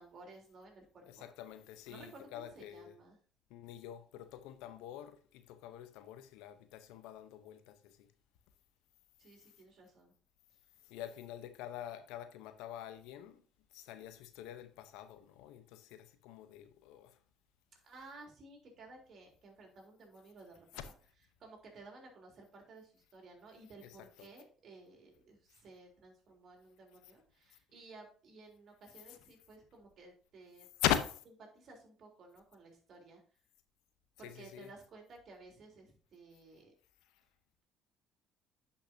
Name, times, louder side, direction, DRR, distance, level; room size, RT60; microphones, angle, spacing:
voice 1, 0.0-1.3 1.9-3.2 9.2-10.1 17.7-20.9 21.4-30.7 31.4-33.2 34.2-36.7, right 3 dB, 55° right, 3.5 m, -56 dB
voice 2, 1.0-2.9 3.5-8.1 10.9-13.4 13.7-17.2 20.8-20.9 23.8-24.0 25.5-25.6 30.8-31.2 34.2-34.7, left 11 dB, 80° left, 0.8 m, -42 dB
10.5 x 5.7 x 2.7 m
supercardioid pair, 65°, 0 cm